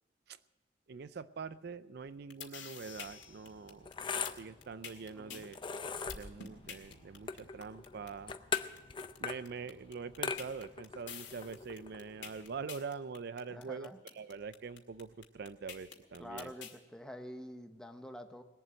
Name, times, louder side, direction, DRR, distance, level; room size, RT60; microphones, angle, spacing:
voice 1, 0.9-5.6 6.1-8.3 9.2-16.5, right 5 dB, 60° right, 15 dB, 0.5 m, -44 dB
sound 1, 2.1-16.8, left 8 dB, 85° left, 2.0 m, -48 dB
sound 2, 2.8-12.7, left 6 dB, 25° left, 0.6 m, -42 dB
voice 2, 5.1-5.5 13.5-14.0 16.2-18.4, equal, 5° left, 6 dB, 1.0 m, -47 dB
19.5 x 7.6 x 8.9 m, 1.1 s
head